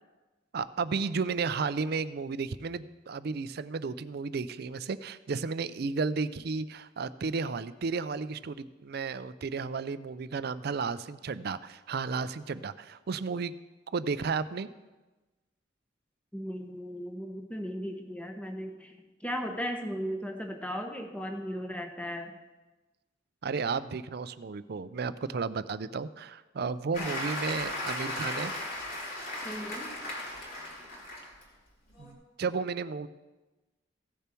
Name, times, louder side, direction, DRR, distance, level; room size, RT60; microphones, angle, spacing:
voice 1, 0.5-13.5 13.9-14.7 23.4-28.5 32.0-33.1, right 4 dB, 55° right, 14 dB, 0.4 m, -33 dB
voice 2, 16.3-22.3 27.0-27.2 29.4-29.9, equal, 5° left, 4 dB, 1.1 m, -37 dB
Applause, 26.9-31.4 31.9-32.1, left 1 dB, 50° left, 3.0 m, -36 dB
16.0 x 6.8 x 4.5 m, 1.1 s
head